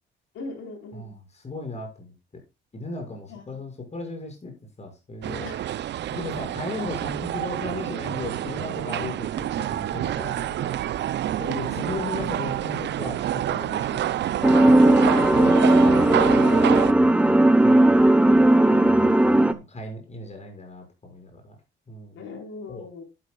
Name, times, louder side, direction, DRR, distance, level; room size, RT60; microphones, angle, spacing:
voice 1, 0.3-1.1 3.3-3.6 5.4-5.6 11.4-12.2 15.0-15.6 22.1-23.0, left 3 dB, 85° left, 2 dB, 4.8 m, -39 dB
voice 2, 0.9-2.1 2.7-5.6 6.1-10.8 11.5-15.4 15.8-18.0 18.7-19.1 19.4-21.6 21.9-22.2 22.7-22.8, left 2 dB, 35° left, 3 dB, 6.4 m, -37 dB
sound 1, 5.2-16.9, right 12 dB, 65° right, 0.6 m, -28 dB
sound 2, 14.4-19.5, right 1 dB, 5° right, 1.0 m, -17 dB
12.0 x 11.5 x 2.4 m, 0.27 s
cardioid pair, 90°, 20 cm